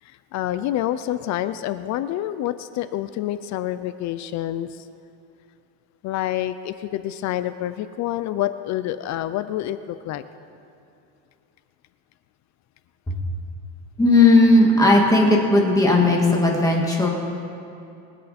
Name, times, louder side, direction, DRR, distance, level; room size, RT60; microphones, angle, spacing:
voice 1, 0.0-4.9 6.0-10.2, left 13 dB, 45° left, 12 dB, 0.5 m, -27 dB
voice 2, 14.0-17.1, left 2 dB, 10° left, -1 dB, 1.9 m, -16 dB
22.5 x 8.2 x 4.2 m, 2.7 s
cardioid pair, 140°, 39 cm